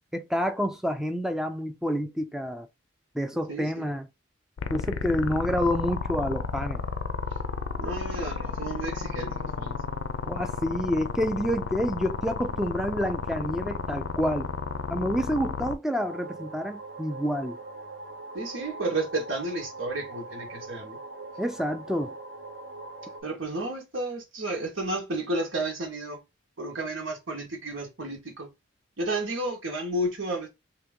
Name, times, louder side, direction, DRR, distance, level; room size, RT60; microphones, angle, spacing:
voice 1, 0.1-2.7 3.1-4.1 4.7-6.8 10.3-14.5 14.9-17.6 21.4-22.2, equal, ahead, 0.3 m, -28 dB
voice 2, 3.5-3.9 7.8-9.8 18.3-21.0 23.2-26.2 26.6-28.5 29.0-30.5, right 2 dB, 85° right, 1.4 m, -32 dB
sound 1, 4.6-15.8, left 5 dB, 80° left, 0.4 m, -32 dB
sound 2, 15.9-23.2, right 3 dB, 55° right, 0.9 m, -42 dB
2.8 x 2.7 x 3.5 m
head